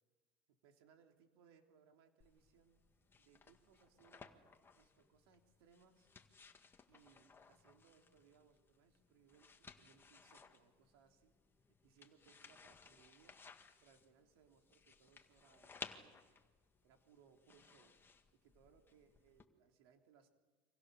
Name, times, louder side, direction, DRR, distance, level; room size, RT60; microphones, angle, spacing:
voice 1, 0.5-2.8 3.2-4.4 4.7-6.1 6.9-11.3 11.8-13.5 13.8-16.2 16.8-18.0 18.3-20.3, right 7 dB, 90° right, 4 dB, 3.3 m, -69 dB
sound 1, 2.2-19.4, left 5 dB, 15° left, 1.9 m, -60 dB
29.5 x 26.5 x 6.9 m, 1.4 s
supercardioid pair, 130°, 13 cm